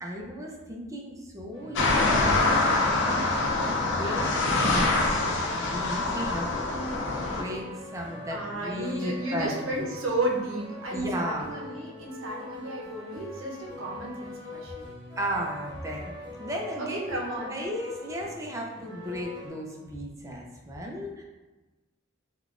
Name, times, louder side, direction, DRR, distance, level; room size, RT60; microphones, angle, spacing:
voice 1, 0.0-4.3 4.6-5.0 5.5-7.7 7.9-9.5 10.9-11.5 15.2-16.1 16.4-21.2, equal, 15° right, 0 dB, 0.4 m, -35 dB
sound 1, 1.5-19.5, left 2 dB, 20° left, 1.0 m, -43 dB
sound 2, 1.8-7.4, left 2 dB, 65° left, 0.5 m, -25 dB
voice 2, 8.3-14.9 16.8-17.5, right 1 dB, 80° right, -2 dB, 0.7 m, -33 dB
3.6 x 2.3 x 2.4 m, 1.2 s
head